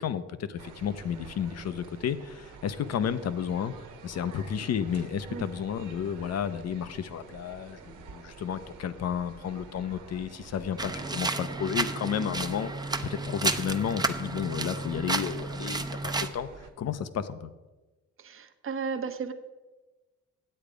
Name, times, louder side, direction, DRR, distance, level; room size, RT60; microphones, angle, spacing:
voice 1, 0.0-3.7 4.0-17.5, left 8 dB, 55° left, 12 dB, 0.7 m, -32 dB
sound 1, 0.6-16.7, right 5 dB, 85° right, 1.3 m, -48 dB
sound 2, 10.8-16.3, right 3 dB, 15° right, 0.6 m, -31 dB
voice 2, 18.2-19.3, right 5 dB, 45° right, 8 dB, 0.9 m, -34 dB
8.9 x 7.9 x 5.0 m, 1.2 s
cardioid pair, 90°, 30 cm